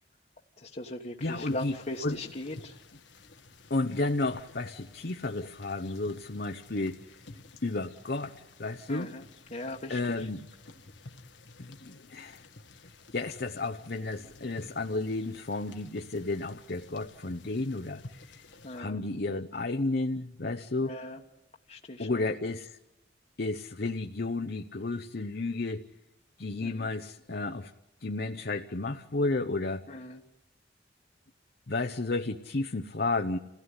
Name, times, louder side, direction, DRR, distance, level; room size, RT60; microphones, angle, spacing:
voice 1, 0.6-2.8 8.9-9.2 9.5-10.3 18.6-19.0 20.8-21.2 21.7-22.3 26.6-26.9 29.9-30.2, left 1 dB, 40° left, -1 dB, 1.4 m, -39 dB
sound 1, 1.2-18.8, left 3 dB, 85° left, 1.6 m, -52 dB
voice 2, 1.2-1.8 2.0-2.2 3.7-7.1 7.6-9.1 9.9-10.5 11.6-12.4 13.1-18.4 18.7-21.0 22.0-22.8 23.4-25.9 26.4-27.7 28.0-29.9 31.7-33.4, left 2 dB, 55° left, 5 dB, 0.9 m, -32 dB
29.5 x 16.5 x 9.7 m, 0.96 s
head